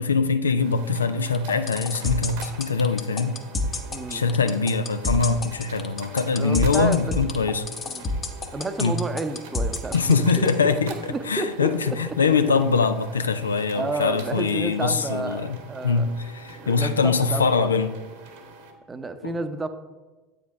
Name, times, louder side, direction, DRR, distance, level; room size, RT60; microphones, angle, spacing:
voice 1, 0.0-3.4 4.1-7.7 8.8-9.0 9.9-15.6 15.8-17.9 19.2-19.3, left 5 dB, 80° left, 11 dB, 0.4 m, -23 dB
sound 1, 0.6-18.7, right 3 dB, 65° right, 1.2 m, -44 dB
sound 2, 1.3-10.5, left 3 dB, 25° left, 0.9 m, -28 dB
voice 2, 3.9-4.2 6.4-7.1 7.9-8.1 8.5-10.7 11.1-12.0 13.7-16.1 16.5-17.7 18.9-19.7, right 3 dB, 20° right, 9 dB, 0.7 m, -31 dB
8.6 x 5.2 x 4.7 m, 1.2 s
figure-of-eight pair, 75°, 0 cm